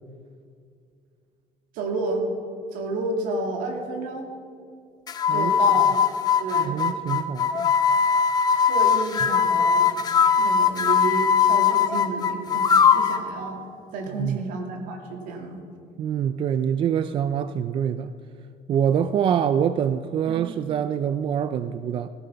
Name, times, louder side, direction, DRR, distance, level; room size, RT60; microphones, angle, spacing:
voice 1, 1.7-2.2 2.7-4.3 5.3-6.0 6.4-6.8 8.6-10.0 10.4-12.7 12.9-13.6 13.9-15.6 20.3-20.5, right 3 dB, 75° right, 3 dB, 2.5 m, -30 dB
sound 1, 5.1-13.3, left 7 dB, 30° left, 0.8 m, -20 dB
voice 2, 6.5-7.7 14.1-14.4 16.0-18.1 18.7-22.1, right 8 dB, 40° right, 12 dB, 0.4 m, -25 dB
16.5 x 15.0 x 5.7 m, 2.3 s
cardioid pair, 155°, 14 cm